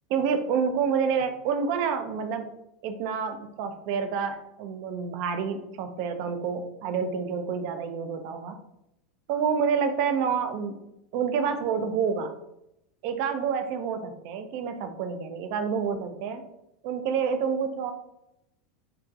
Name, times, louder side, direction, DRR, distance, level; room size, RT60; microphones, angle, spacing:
voice 1, 0.1-2.5 2.8-8.6 9.3-10.8 11.1-12.3 13.0-16.4 16.8-17.9, right 6 dB, 50° right, 8 dB, 0.3 m, -28 dB
2.9 x 2.3 x 2.4 m, 0.83 s
figure-of-eight pair, 85°, 3 cm